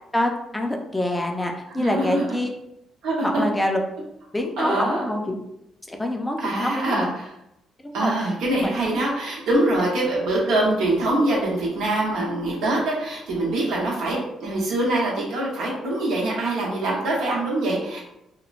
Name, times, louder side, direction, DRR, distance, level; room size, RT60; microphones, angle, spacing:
voice 1, 0.1-2.5 3.2-3.8 4.3-5.4 5.9-7.1 7.8-8.7, left 1 dB, 15° left, 3 dB, 0.4 m, -26 dB
voice 2, 1.8-2.4 3.0-3.5 4.6-5.1 6.4-7.3 7.9-18.0, right 1 dB, 85° right, -4 dB, 0.9 m, -24 dB
3.0 x 2.1 x 2.4 m, 0.83 s
cardioid pair, 90°, 0 cm